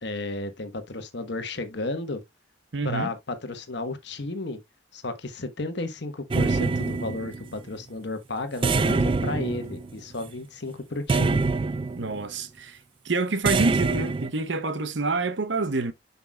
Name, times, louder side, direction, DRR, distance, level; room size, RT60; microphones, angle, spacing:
voice 1, 0.0-2.2 2.8-4.6 4.9-11.4, left 2 dB, 60° left, 1.2 m, -33 dB
voice 2, 2.7-3.1 12.0-12.8 13.0-15.9, right 3 dB, 65° right, 0.8 m, -27 dB
sound 1, 6.3-7.6 8.6-10.3 11.1-12.2 13.5-14.3, right 4 dB, 25° right, 0.3 m, -25 dB
7.4 x 5.8 x 2.3 m
head